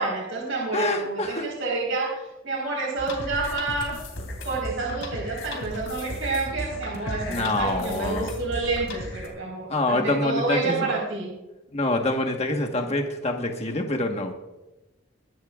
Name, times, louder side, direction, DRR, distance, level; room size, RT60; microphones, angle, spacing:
voice 1, 0.0-3.9 4.4-11.3, right 3 dB, 90° right, -3 dB, 4.4 m, -29 dB
voice 2, 0.7-1.5 7.3-8.3 9.7-10.9 11.7-14.3, left 2 dB, 35° left, 3 dB, 1.3 m, -26 dB
sound 1, 3.0-9.3, left 1 dB, 70° left, 3.2 m, -35 dB
23.0 x 12.0 x 2.4 m, 1.0 s
head